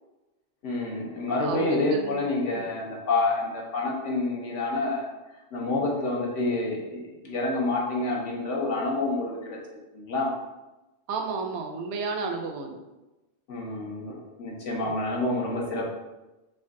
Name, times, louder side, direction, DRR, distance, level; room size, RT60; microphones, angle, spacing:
voice 1, 0.6-5.1 5.5-10.3 13.5-15.9, left 2 dB, 85° left, -2 dB, 1.2 m, -28 dB
voice 2, 1.3-2.3 2.5-2.7 11.1-12.8 14.8-14.9, right 4 dB, 75° right, 4 dB, 0.8 m, -32 dB
3.8 x 2.2 x 3.6 m, 1.0 s
omnidirectional pair, 1.2 m